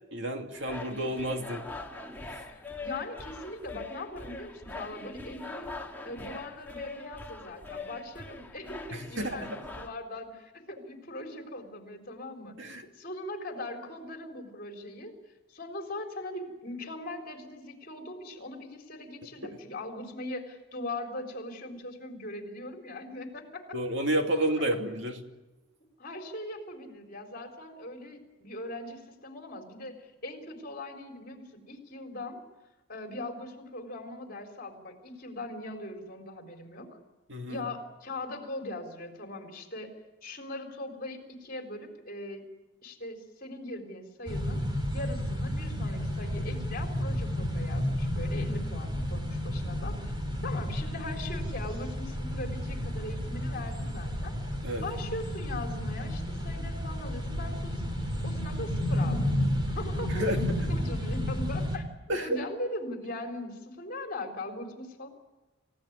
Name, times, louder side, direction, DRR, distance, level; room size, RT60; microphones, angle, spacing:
voice 1, 0.1-1.6 8.9-9.6 12.6-12.9 19.4-19.6 23.7-25.2 37.3-37.6 54.6-54.9 60.1-60.4 62.1-62.4, right 1 dB, 60° right, 4 dB, 2.6 m, -30 dB
sound 1, 0.5-9.9, left 3 dB, 10° left, 1.8 m, -42 dB
voice 2, 2.5-5.8 6.0-12.5 12.9-15.1 15.5-23.6 26.0-32.4 32.9-36.9 37.5-39.9 40.2-42.4 42.8-44.6 44.9-54.4 54.8-57.9 58.2-59.3 59.8-65.1, left 1 dB, 45° left, 4 dB, 3.9 m, -40 dB
sound 2, 44.3-61.8, equal, 20° right, 3.4 m, -32 dB
29.0 x 16.5 x 9.6 m, 1.1 s
head